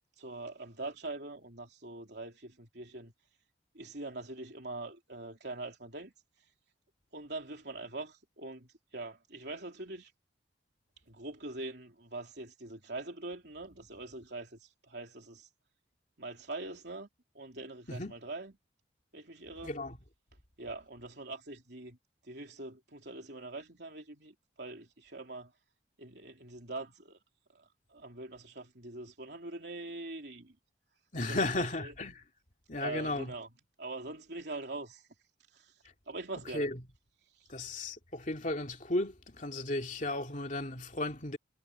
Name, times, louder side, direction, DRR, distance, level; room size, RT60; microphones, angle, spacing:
voice 1, 0.2-3.1 3.7-6.5 7.1-10.1 11.0-15.5 16.2-17.1 17.3-18.5 19.1-19.8 20.6-22.0 22.2-25.5 26.0-27.2 27.5-30.6 31.3-31.9 32.8-33.5 33.8-35.1 35.5-36.7 37.2-37.5, right 2 dB, 60° right, 3.5 m, -43 dB
voice 2, 19.6-19.9 31.1-32.2 32.7-33.3 36.5-36.8 37.5-41.4, left 2 dB, 40° left, 2.6 m, -34 dB
head